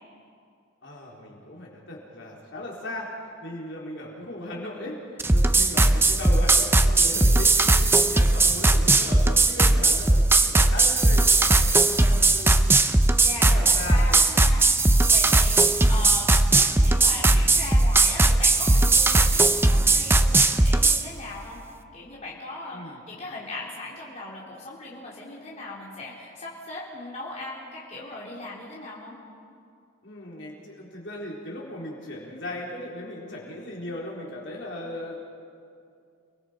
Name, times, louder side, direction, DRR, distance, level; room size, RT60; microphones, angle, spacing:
voice 1, 0.8-3.1 3.4-12.7 13.3-14.2 14.9-15.3 19.2-19.5 22.7-23.0 30.0-35.2, left 1 dB, 60° left, -3 dB, 4.0 m, -37 dB
sound 1, 5.2-21.0, right 2 dB, 10° right, 0.5 m, -19 dB
voice 2, 13.2-15.6 15.9-21.6 21.9-29.2, left 2 dB, 35° left, -5 dB, 3.5 m, -38 dB
29.5 x 20.0 x 5.2 m, 2.3 s
head